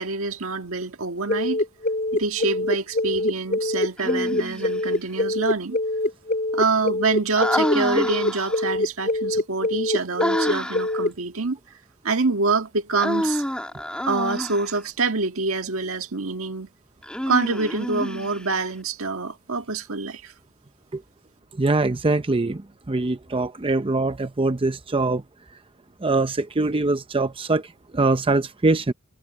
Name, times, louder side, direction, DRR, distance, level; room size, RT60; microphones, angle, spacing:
voice 1, 0.0-1.6 2.1-5.8 6.5-11.6 12.0-13.4 14.1-16.7 17.3-20.3, right 3 dB, 75° right, 1.7 m, -26 dB
sound 1, 1.3-11.1, left 1 dB, 35° left, 6.0 m, -24 dB
Human voice, 4.0-4.9 7.4-8.7 10.2-11.0 13.0-14.8 17.0-18.6, equal, 5° left, 2.4 m, -28 dB
voice 2, 21.6-22.6 22.9-25.2 26.0-27.6 27.9-28.9, right 3 dB, 25° right, 0.6 m, -22 dB
head